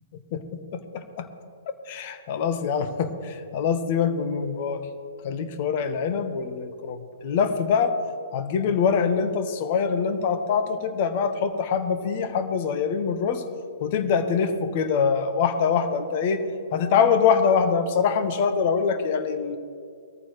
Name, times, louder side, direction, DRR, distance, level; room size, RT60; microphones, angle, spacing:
voice 1, 0.3-1.3 1.9-4.8 5.2-8.0 8.3-13.4 13.8-16.4 16.7-19.6, left 6 dB, 45° left, 8 dB, 1.6 m, -24 dB
21.5 x 14.5 x 3.4 m, 2.3 s
figure-of-eight pair, 120°, 0 cm